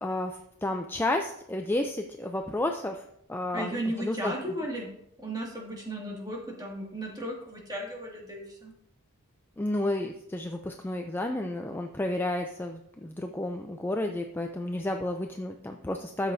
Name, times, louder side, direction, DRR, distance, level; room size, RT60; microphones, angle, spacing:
voice 1, 0.0-4.3 9.6-16.3, left 1 dB, 10° left, 4 dB, 0.4 m, -31 dB
voice 2, 3.5-4.9 5.2-8.7, right 1 dB, 20° right, -1 dB, 2.1 m, -35 dB
12.5 x 7.5 x 2.7 m, 0.74 s
head